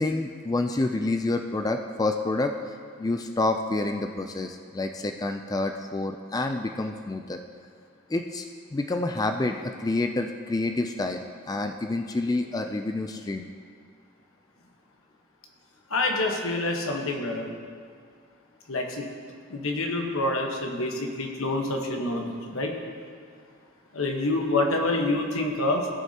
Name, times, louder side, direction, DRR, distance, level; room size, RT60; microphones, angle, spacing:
voice 1, 0.0-2.5 3.0-7.4 8.1-8.5 8.7-13.5, left 2 dB, 20° left, 5 dB, 0.3 m, -28 dB
voice 2, 15.9-17.5 18.7-19.1 19.5-22.7 23.9-25.9, left 2 dB, 85° left, 1 dB, 1.2 m, -27 dB
18.0 x 6.2 x 2.9 m, 2.1 s
head